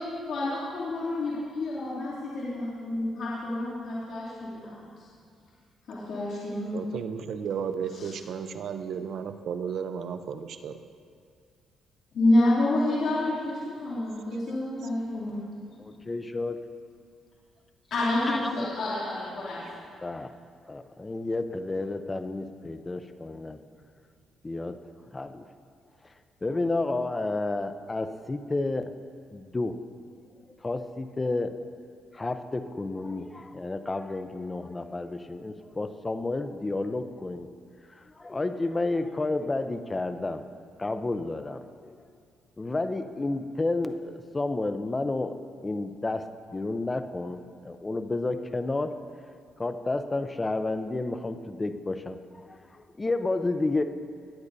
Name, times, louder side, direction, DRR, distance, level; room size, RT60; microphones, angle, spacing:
voice 1, 0.3-4.7 5.9-6.8 7.9-8.1 12.1-15.4 17.9-19.6, left 1 dB, 65° left, -9 dB, 2.8 m, -28 dB
voice 2, 6.7-10.8, right 7 dB, 65° right, 9 dB, 0.6 m, -34 dB
voice 3, 15.8-16.6 18.3-18.7 20.0-20.3 20.7-23.6 24.4-24.8 25.1-25.4 26.4-28.9 29.3-29.8 30.6-31.6 32.1-37.5 37.9-40.4 40.8-42.0 42.6-45.4 45.6-49.0 49.6-53.8, left 2 dB, 20° left, 9 dB, 0.6 m, -31 dB
19.5 x 9.6 x 2.7 m, 2.2 s
cardioid pair, 90°, 0 cm